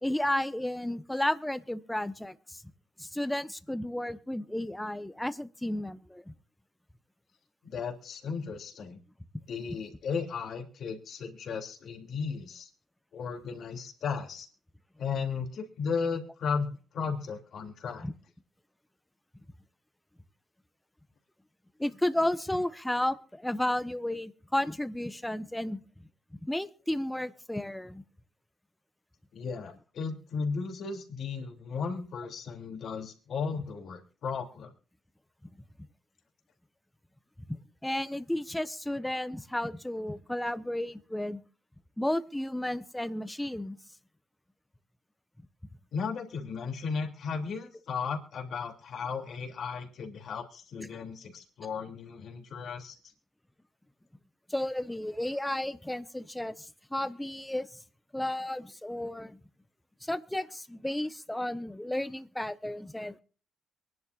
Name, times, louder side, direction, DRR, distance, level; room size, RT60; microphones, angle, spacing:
voice 1, 0.0-2.6 3.0-6.3 18.0-18.1 21.8-25.8 26.5-28.0 37.5-37.6 37.8-41.4 42.0-43.8 54.5-57.8 58.1-59.4 60.0-63.2, left 1 dB, 10° left, 11 dB, 1.1 m, -33 dB
voice 2, 7.6-9.0 9.5-12.7 13.1-14.5 15.0-18.1 29.3-34.7 45.9-53.0, left 5 dB, 65° left, 2 dB, 3.0 m, -35 dB
24.0 x 11.0 x 2.6 m, 0.41 s
supercardioid pair, 55°, 0 cm